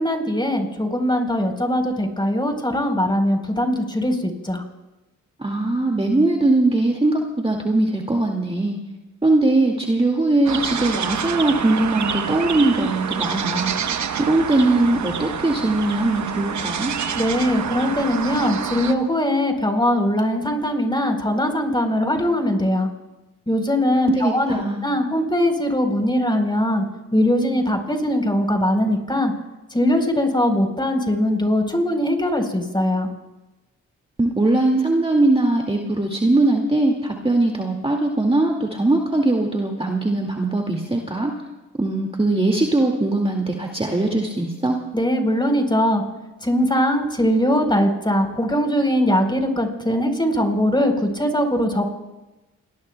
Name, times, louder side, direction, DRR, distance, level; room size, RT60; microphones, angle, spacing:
voice 1, 0.0-4.6 17.2-22.9 23.5-26.8 27.1-29.3 29.7-33.1 44.9-46.0 46.4-51.9, left 1 dB, 15° left, 4 dB, 4.2 m, -21 dB
voice 2, 5.4-8.8 9.2-13.7 14.2-16.9 24.2-24.8 34.2-41.3 41.8-44.8, right 2 dB, 15° right, 1 dB, 2.2 m, -20 dB
sound 1, 10.5-18.9, right 7 dB, 60° right, 1.1 m, -27 dB
29.5 x 20.0 x 2.3 m, 1.1 s
supercardioid pair, 45°, 33 cm